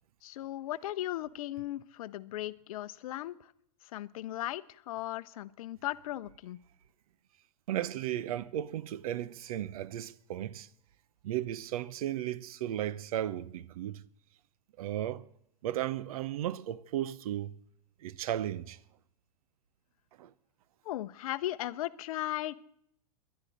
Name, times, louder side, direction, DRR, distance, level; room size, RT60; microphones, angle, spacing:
voice 1, 0.2-3.5 3.8-6.6 20.8-22.5, left 14 dB, 60° left, 0.7 m, -37 dB
voice 2, 7.7-10.7 11.2-14.0 14.8-15.2 15.6-17.6 18.0-18.8 20.2-20.3, right 12 dB, 60° right, 0.8 m, -35 dB
22.0 x 11.5 x 4.0 m
hypercardioid pair, 110°, 21 cm